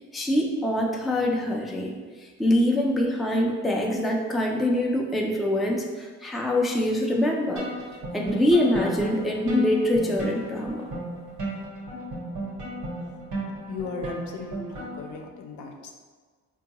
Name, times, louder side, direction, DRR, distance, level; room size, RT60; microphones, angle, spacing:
voice 1, 0.0-7.7 8.1-10.9, left 1 dB, ahead, 0 dB, 0.3 m, -24 dB
sound 1, 7.6-15.2, right 1 dB, 75° right, 1.0 m, -35 dB
voice 2, 13.7-15.9, left 4 dB, 75° left, 3 dB, 0.5 m, -37 dB
3.7 x 2.3 x 2.8 m, 1.5 s
cardioid pair, 90°, 30 cm